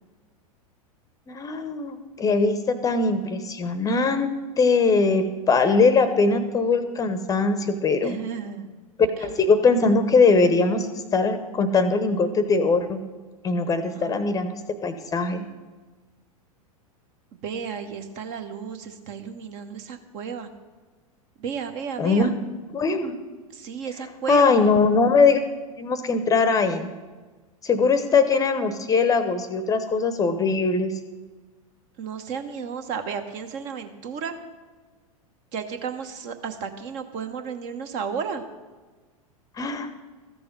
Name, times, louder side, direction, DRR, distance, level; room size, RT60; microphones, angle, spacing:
voice 1, 1.3-4.3 4.6-8.2 9.2-10.9 11.1-13.0 13.4-14.5 14.8-15.4 22.0-22.3 22.7-23.1 24.3-25.4 25.8-26.9 27.6-30.9 39.6-39.9, left 4 dB, 20° left, 10 dB, 0.8 m, -21 dB
voice 2, 8.0-8.7 9.2-9.3 13.9-14.3 17.4-20.5 21.4-22.3 23.5-24.7 32.0-34.3 35.5-38.4, right 6 dB, 40° right, 7 dB, 1.2 m, -33 dB
13.5 x 6.8 x 5.3 m, 1.3 s
figure-of-eight pair, 95°, 19 cm